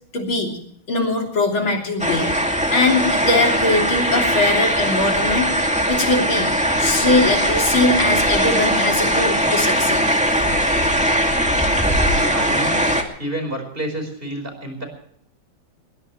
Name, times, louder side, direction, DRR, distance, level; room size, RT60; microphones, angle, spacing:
voice 1, 0.1-0.6 0.9-2.3 2.7-6.5 6.8-10.3, left 2 dB, 70° left, 1 dB, 4.1 m, -21 dB
sound 1, 2.0-13.0, equal, 5° right, 2.1 m, -20 dB
voice 2, 12.1-12.8 13.2-14.9, right 1 dB, 25° right, 5 dB, 5.0 m, -29 dB
21.5 x 21.0 x 3.2 m, 0.66 s
omnidirectional pair, 2.3 m